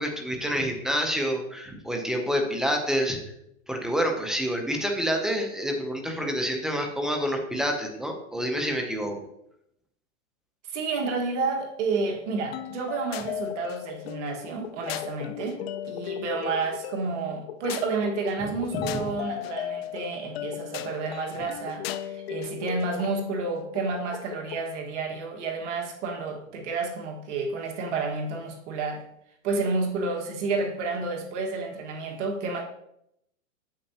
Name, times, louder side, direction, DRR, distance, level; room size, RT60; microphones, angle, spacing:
voice 1, 0.0-3.2 3.7-9.2 18.9-19.0, equal, ahead, 3 dB, 0.5 m, -28 dB
voice 2, 10.7-29.0 29.4-32.6, right 4 dB, 55° right, 2 dB, 1.6 m, -30 dB
sound 1, 12.5-24.7, left 10 dB, 50° left, 0.5 m, -36 dB
8.7 x 7.5 x 2.8 m, 0.77 s
hypercardioid pair, 145°, 42 cm